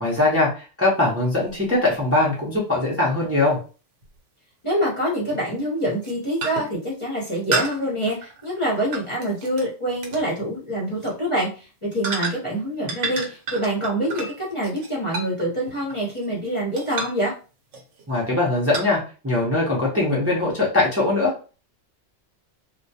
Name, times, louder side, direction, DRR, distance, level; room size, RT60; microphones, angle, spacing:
voice 1, 0.0-3.6 18.1-21.5, left 2 dB, 15° right, -6 dB, 0.5 m, -21 dB
sound 1, 1.5-1.6 4.0-4.1 5.3-5.5 5.9-6.1 6.4-6.8 7.5-9.7 10.0-10.3 10.9-11.1 12.0-12.6 12.9-16.4 16.8-17.3 17.7-18.0 18.7-18.9, right 3 dB, 75° right, 1.0 m, -31 dB
voice 2, 4.6-17.3, right 1 dB, 30° left, -5 dB, 0.7 m, -25 dB
2.2 x 2.2 x 2.7 m, 0.35 s
omnidirectional pair, 1.2 m